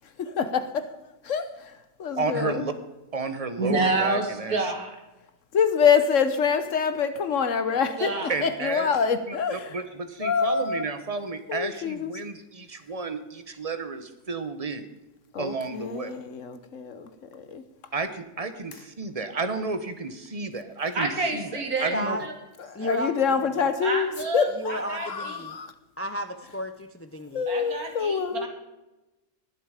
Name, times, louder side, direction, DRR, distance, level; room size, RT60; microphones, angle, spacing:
voice 1, 0.0-2.7 5.5-9.8 10.2-10.9 11.5-12.1 15.3-17.9 18.7-18.8 22.6-25.7 27.3-28.5, left 6 dB, 60° left, 11 dB, 1.3 m, -26 dB
voice 2, 2.2-2.7 3.1-4.7 8.3-8.9 9.7-14.8 15.4-16.1 17.9-22.2, right 4 dB, 25° right, 9 dB, 1.1 m, -32 dB
voice 3, 3.6-5.0 8.0-8.3 20.9-22.3 23.8-24.4 24.7-25.4 27.5-28.5, right 3 dB, 85° right, 3 dB, 2.9 m, -28 dB
voice 4, 21.9-22.3 22.7-23.1 24.6-25.6 26.0-27.4, equal, 20° left, 9 dB, 0.4 m, -32 dB
20.5 x 7.7 x 5.1 m, 1.0 s
omnidirectional pair, 1.5 m